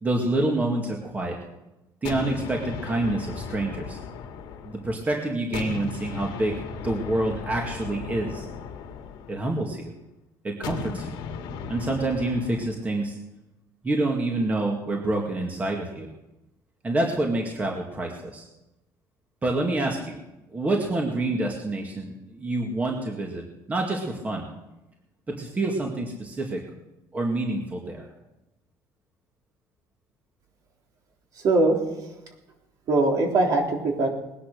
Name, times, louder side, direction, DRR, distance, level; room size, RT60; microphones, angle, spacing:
voice 1, 0.0-1.4 2.0-4.0 4.6-6.6 6.8-8.5 9.3-9.9 10.4-11.1 11.7-13.2 13.8-16.1 16.8-18.5 19.4-20.2 20.5-24.5 25.4-26.6 27.1-28.0, right 2 dB, 20° right, 0 dB, 2.0 m, -27 dB
sound 1, 2.0-5.1 5.5-9.8 10.6-12.7, left 6 dB, 75° left, 2.0 m, -36 dB
voice 2, 31.4-31.8 32.9-34.1, right 2 dB, 50° right, 1 dB, 3.6 m, -21 dB
20.0 x 10.0 x 6.6 m, 0.96 s
cardioid pair, 135°, 8 cm